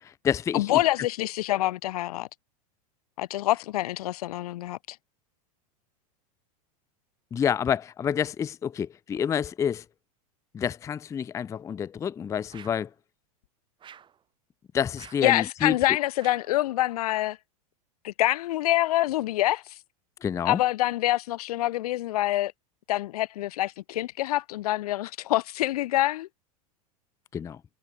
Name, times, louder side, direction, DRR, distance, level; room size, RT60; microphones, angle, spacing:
voice 1, 0.0-0.8 7.3-9.8 10.5-12.9 14.7-15.7 20.2-20.6 27.3-27.6, left 8 dB, 15° left, 0.4 m, -28 dB
voice 2, 0.5-2.3 3.2-5.0 15.2-17.4 18.0-19.7 20.5-22.5 22.9-26.3, left 15 dB, 70° left, 0.8 m, -26 dB
sound 1, 12.5-12.9 13.8-14.2 14.9-15.3 16.2-16.6, right 8 dB, 25° right, 1.4 m, -49 dB
hypercardioid pair, 105°, 20 cm